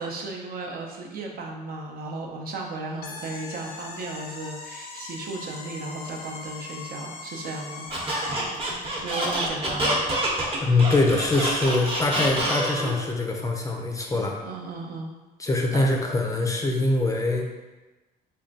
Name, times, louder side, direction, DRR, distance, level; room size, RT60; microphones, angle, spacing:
voice 1, 0.0-7.9 9.0-10.0 14.1-15.1 15.7-15.8, right 2 dB, 65° right, 0 dB, 0.6 m, -35 dB
sound 1, 3.0-8.6, left 3 dB, 65° left, 0.6 m, -40 dB
Squeak, 7.9-13.0, right 1 dB, 35° right, 0.9 m, -27 dB
voice 2, 10.6-14.4 15.4-17.5, left 2 dB, 20° left, 1 dB, 0.5 m, -23 dB
3.6 x 2.2 x 3.9 m, 1.1 s
cardioid pair, 120°, 17 cm